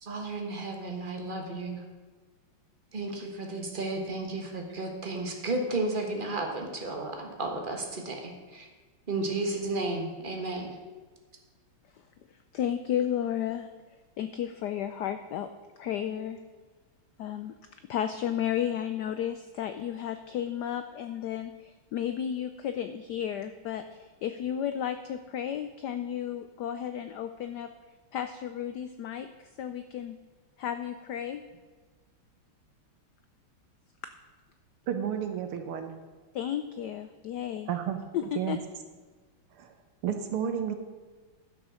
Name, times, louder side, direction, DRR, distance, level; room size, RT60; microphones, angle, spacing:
voice 1, 0.0-1.8 2.9-8.7 9.1-10.7, right 2 dB, 25° right, 2 dB, 1.3 m, -33 dB
voice 2, 12.5-13.7 14.2-15.5 15.8-16.4 17.2-17.5 17.9-27.7 28.1-29.3 29.6-30.2 30.6-31.4 36.3-37.7 38.1-38.6, left 10 dB, 85° left, 9 dB, 0.9 m, -33 dB
voice 3, 34.9-35.9 37.7-38.0 38.4-38.6 39.6-39.7 40.0-40.8, right 8 dB, 80° right, 7 dB, 1.9 m, -31 dB
11.5 x 6.3 x 6.3 m, 1.4 s
omnidirectional pair, 2.4 m